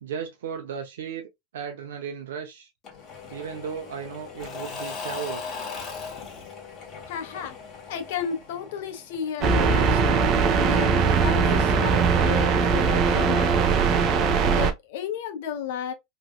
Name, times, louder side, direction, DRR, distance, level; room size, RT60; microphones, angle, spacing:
voice 1, 0.0-2.7 3.3-5.6, right 7 dB, 90° right, 0.7 m, -35 dB
Engine / Mechanisms / Drill, 2.8-9.5, left 5 dB, 40° left, 1.4 m, -38 dB
voice 2, 7.1-7.6 7.9-13.8 14.4-15.9, left 8 dB, 75° left, 1.0 m, -33 dB
sound 1, 9.4-14.7, right 5 dB, 45° right, 0.7 m, -20 dB
3.1 x 2.7 x 2.3 m
supercardioid pair, 120°, 0 cm